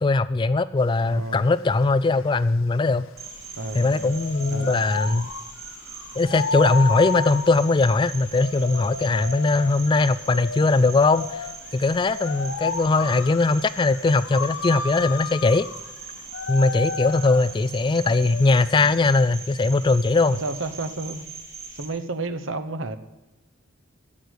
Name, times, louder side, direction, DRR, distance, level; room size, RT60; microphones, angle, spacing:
voice 1, 0.0-3.1 3.7-5.3 6.2-15.7 16.5-20.4, left 3 dB, 25° left, 15 dB, 0.3 m, -20 dB
sound 1, 0.8-18.8, left 4 dB, 75° left, 0.8 m, -33 dB
voice 2, 1.0-1.4 3.6-4.1 4.5-4.8 20.3-21.3 21.7-23.0, right 2 dB, 70° right, 11 dB, 1.0 m, -31 dB
Cricket, 3.2-21.9, right 4 dB, 30° right, 3.1 m, -41 dB
16.0 x 6.4 x 8.2 m, 1.1 s
head